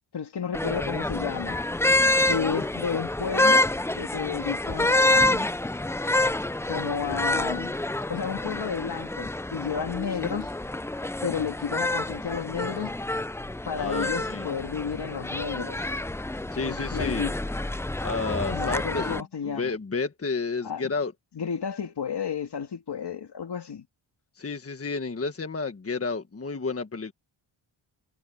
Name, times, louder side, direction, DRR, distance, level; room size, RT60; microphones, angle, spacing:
voice 1, 0.1-1.6 2.3-3.7 3.9-5.5 6.7-7.8 8.1-10.5 11.2-12.9 13.7-15.9 16.6-17.3 18.5-19.7 20.6-20.9 21.3-23.9, left 7 dB, 55° left, 2.7 m, -32 dB
sound 1, 0.5-19.2, left 2 dB, 5° left, 0.4 m, -27 dB
voice 2, 13.8-14.5 16.5-17.3 18.0-19.2 19.4-21.1 24.4-27.1, left 4 dB, 30° left, 1.5 m, -31 dB
wide cardioid pair, 120°, 47 cm